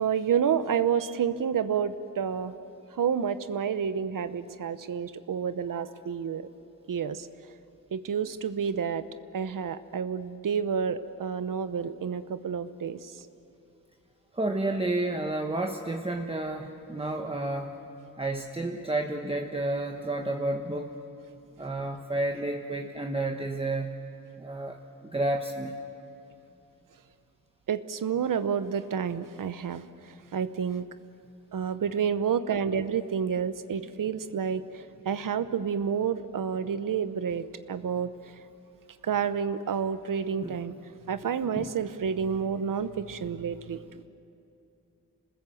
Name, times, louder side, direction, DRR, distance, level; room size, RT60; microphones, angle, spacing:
voice 1, 0.0-2.5 2.9-6.5 6.9-7.3 7.9-9.0 9.3-13.1 27.7-29.8 30.3-30.8 31.5-38.1 39.0-40.7 41.1-43.8, right 7 dB, 75° right, 12 dB, 0.9 m, -29 dB
voice 2, 14.3-17.7 18.2-20.9 21.6-23.9 24.4-24.8 25.1-25.7 40.4-40.6 41.6-41.7, right 2 dB, 15° right, 2 dB, 1.3 m, -30 dB
27.5 x 20.0 x 7.8 m, 2.7 s
wide cardioid pair, 90°, 33 cm